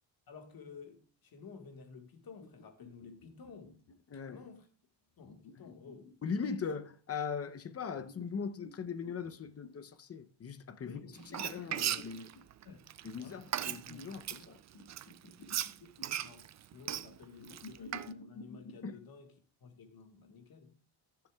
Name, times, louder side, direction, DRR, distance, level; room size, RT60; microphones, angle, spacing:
voice 1, 0.3-3.8 4.1-4.7 5.2-6.1 10.8-11.1 12.6-13.5 16.2-19.3 19.6-20.8, left 5 dB, 55° left, 1.6 m, -53 dB
sound 1, 2.3-4.2 5.2-7.0 8.0-9.9 10.9-12.4 13.8-14.5 14.7-16.3 17.4-18.9, left 3 dB, 75° left, 2.2 m, -53 dB
voice 2, 6.2-11.0 11.3-12.3 13.0-14.6 18.8-19.0, left 6 dB, 35° left, 0.7 m, -39 dB
Frying (food), 11.2-14.4 14.9-18.1, right 11 dB, 40° right, 0.4 m, -37 dB
14.5 x 6.9 x 2.3 m
cardioid pair, 120°, 44 cm